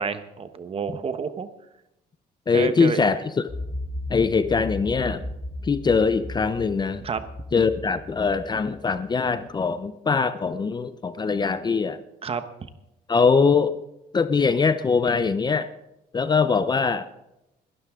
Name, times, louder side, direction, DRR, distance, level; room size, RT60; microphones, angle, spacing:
voice 1, 0.0-1.5 2.5-3.0 7.0-7.2 12.2-12.4, right 6 dB, 35° right, 10 dB, 1.1 m, -29 dB
voice 2, 2.5-3.5 4.1-5.2 5.6-7.0 7.5-12.0 13.1-13.8 14.1-15.7 16.1-17.0, left 5 dB, 25° left, 12 dB, 0.7 m, -22 dB
sound 1, 3.5-9.2, left 1 dB, 5° left, 7.0 m, -36 dB
20.5 x 12.5 x 3.7 m, 0.89 s
cardioid pair, 110°, 17 cm